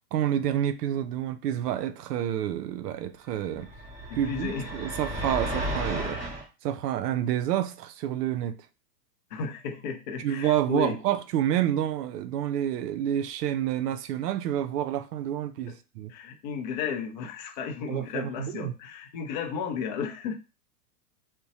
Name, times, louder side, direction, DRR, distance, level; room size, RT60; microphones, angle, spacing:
voice 1, 0.1-3.7 4.1-6.2 6.6-8.7 10.2-16.1 17.9-18.7, right 11 dB, 75° right, 0.5 m, -29 dB
sound 1, 3.5-6.4, right 1 dB, 10° right, 1.0 m, -33 dB
voice 2, 4.1-4.7 9.3-11.0 15.7-15.8 16.1-20.4, left 6 dB, 30° left, 0.4 m, -34 dB
2.5 x 2.1 x 4.0 m
hypercardioid pair, 135°, 49 cm